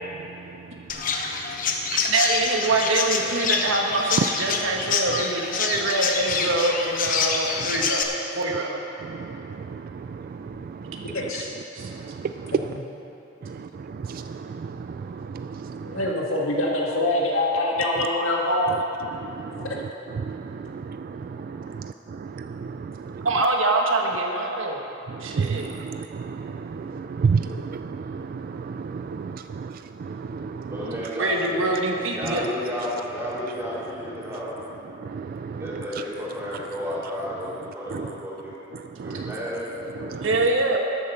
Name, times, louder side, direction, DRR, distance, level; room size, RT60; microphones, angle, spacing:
voice 1, 0.0-2.1 4.2-5.2 6.5-6.6 7.6-7.9 9.0-11.3 11.8-12.8 13.4-16.1 18.0-18.1 18.7-23.4 25.1-31.2 32.2-32.5 34.2-36.2 36.5-36.7 37.9-39.4 39.9-40.5, right 5 dB, 45° right, 9 dB, 0.3 m, -33 dB
Chirp tweet, 0.9-8.0, left 5 dB, 45° left, 0.9 m, -26 dB
voice 2, 1.9-8.8 11.7-11.9 23.2-24.8 25.2-25.7 31.2-32.5 40.2-40.8, right 2 dB, 75° right, 1 dB, 1.3 m, -24 dB
voice 3, 2.6-3.4 30.7-31.6 32.1-34.5 35.5-38.5 39.0-39.6, equal, 15° right, -8 dB, 3.2 m, -33 dB
voice 4, 11.1-11.5 15.8-18.8 19.5-19.8 31.4-31.6 36.2-36.3 37.1-37.2 39.7-40.1, left 1 dB, 90° left, -3 dB, 2.0 m, -25 dB
13.0 x 8.7 x 5.8 m, 2.9 s
head